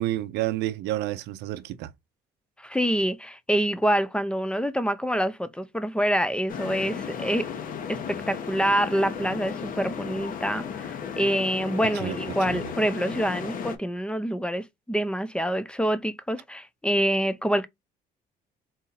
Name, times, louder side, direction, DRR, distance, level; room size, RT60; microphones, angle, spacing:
voice 1, 0.0-1.9 11.9-12.2 12.5-12.7, right 15 dB, 85° right, 0.5 m, -30 dB
voice 2, 2.6-7.5 7.9-17.7, equal, 5° left, 0.5 m, -26 dB
sound 1, 6.5-13.8, left 7 dB, 55° left, 1.0 m, -35 dB
4.1 x 2.8 x 3.9 m
cardioid pair, 110°, 17 cm